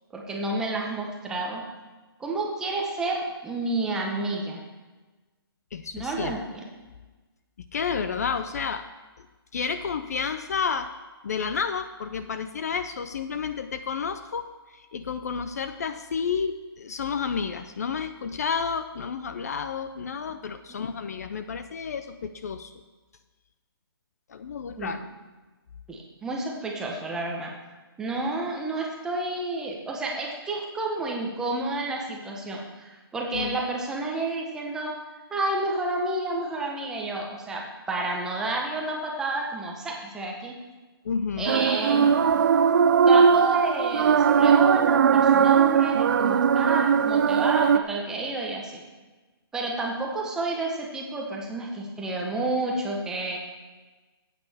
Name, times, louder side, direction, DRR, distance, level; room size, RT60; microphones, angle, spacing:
voice 1, 0.1-1.6 2.2-4.6 5.9-6.6 20.7-20.8 24.7-25.0 25.9-27.5 28.0-35.0 35.3-40.6 41.4-42.2 43.1-48.8 49.5-53.4, right 2 dB, 5° right, 0 dB, 0.7 m, -30 dB
voice 2, 5.7-6.4 7.7-8.8 9.5-10.9 11.2-14.5 14.7-22.7 24.3-25.0 33.3-33.6 41.1-41.6, left 6 dB, 40° left, 10 dB, 0.4 m, -30 dB
sound 1, 41.5-47.8, right 7 dB, 50° right, 0.4 m, -19 dB
14.5 x 8.4 x 3.4 m, 1.2 s
hypercardioid pair, 170°, 13 cm